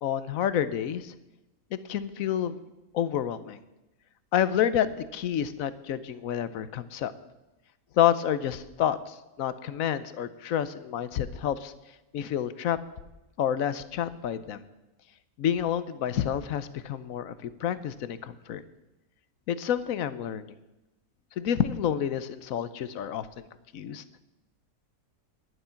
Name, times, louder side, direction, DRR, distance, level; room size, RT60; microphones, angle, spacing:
voice 1, 0.0-1.1 1.7-2.6 2.9-3.6 4.3-7.1 8.0-11.7 12.1-12.8 13.4-14.6 15.4-18.6 19.5-20.5 21.4-23.3 23.7-24.0, left 10 dB, 65° left, 14 dB, 1.1 m, -29 dB
11.5 x 11.0 x 5.7 m, 0.98 s
omnidirectional pair, 1.6 m